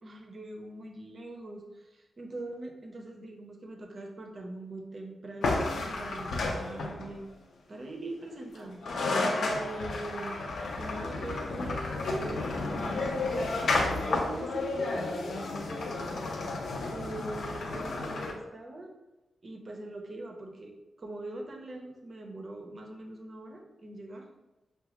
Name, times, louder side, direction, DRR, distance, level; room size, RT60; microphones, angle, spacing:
voice 1, 0.0-7.2 7.7-8.8 9.5-10.4 10.7-13.1 13.5-15.5 16.9-18.9 19.4-24.3, right 2 dB, 35° right, 3 dB, 0.5 m, -42 dB
sound 1, 5.4-7.2 8.6-8.7 8.8-18.3, left 2 dB, 75° left, 0.5 m, -31 dB
5.7 x 2.2 x 2.8 m, 1.0 s
wide cardioid pair, 150°, 0 cm